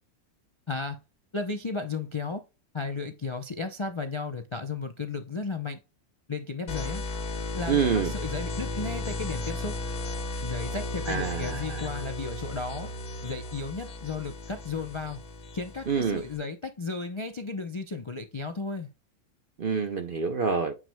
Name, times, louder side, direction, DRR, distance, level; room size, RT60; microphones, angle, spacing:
voice 1, 0.7-1.0 1.3-2.4 2.7-5.8 6.3-7.0 7.5-9.8 10.4-12.9 13.2-15.2 15.5-18.9, left 4 dB, 45° left, 0.4 m, -34 dB
sound 1, 6.7-16.4, left 2 dB, 75° left, 1.5 m, -35 dB
voice 2, 7.7-8.1 11.1-11.9 15.9-16.2 19.6-20.8, right 6 dB, 50° right, 0.6 m, -27 dB
9.1 x 4.9 x 2.2 m
omnidirectional pair, 1.6 m